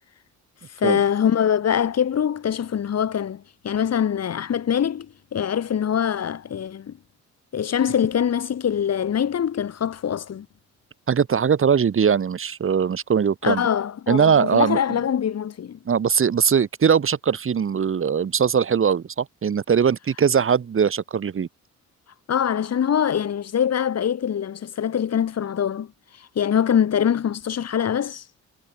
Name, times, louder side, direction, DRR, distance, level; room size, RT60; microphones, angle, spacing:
voice 1, 0.7-6.9 7.5-10.5 13.4-15.8 22.3-25.9 26.1-28.2, left 8 dB, 55° left, 5.9 m, -23 dB
voice 2, 11.1-13.7 14.1-14.8 15.9-21.5, right 7 dB, 45° right, 2.6 m, -20 dB
cardioid pair, 90°, 30 cm